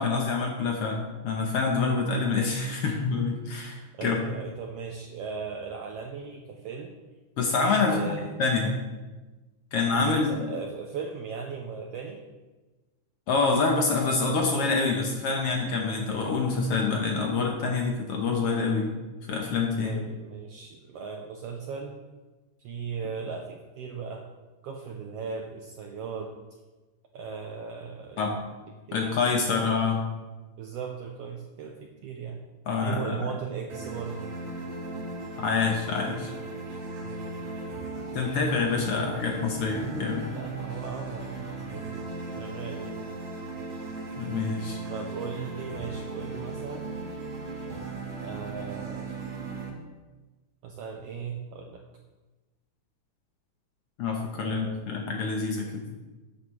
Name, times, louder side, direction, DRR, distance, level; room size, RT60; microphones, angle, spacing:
voice 1, 0.0-4.2 7.4-8.7 9.7-10.3 13.3-18.9 19.3-20.0 28.2-28.3 28.9-30.0 32.7-33.1 35.4-36.3 38.1-40.3 44.2-44.8 54.0-55.8, left 4 dB, 60° left, 1 dB, 1.7 m, -26 dB
voice 2, 3.9-7.0 7.9-8.4 9.9-12.2 19.8-22.0 22.6-24.3 24.6-26.4 27.1-28.4 28.9-29.2 29.5-29.8 30.6-32.4 32.8-34.3 37.0-37.3 38.1-38.4 40.3-43.0 44.9-46.9 48.2-49.2 50.6-51.8 54.4-55.0, right 6 dB, 75° right, 2 dB, 1.5 m, -38 dB
sound 1, 33.7-49.7, right 3 dB, 55° right, 2.1 m, -37 dB
13.0 x 9.1 x 3.3 m, 1.2 s
omnidirectional pair, 3.6 m